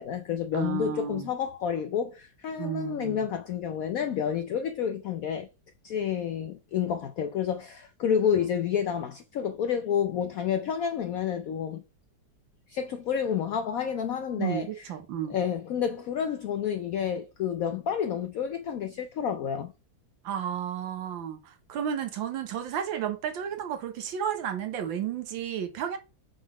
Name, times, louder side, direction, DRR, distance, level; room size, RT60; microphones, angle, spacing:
voice 1, 0.0-5.5 5.8-11.8 12.7-14.8 15.3-19.7, left 8 dB, 75° left, 0.7 m, -29 dB
voice 2, 0.5-1.3 2.6-3.2 14.4-15.4 20.2-26.0, right 9 dB, 75° right, 1.7 m, -32 dB
5.1 x 3.8 x 4.9 m
omnidirectional pair, 2.1 m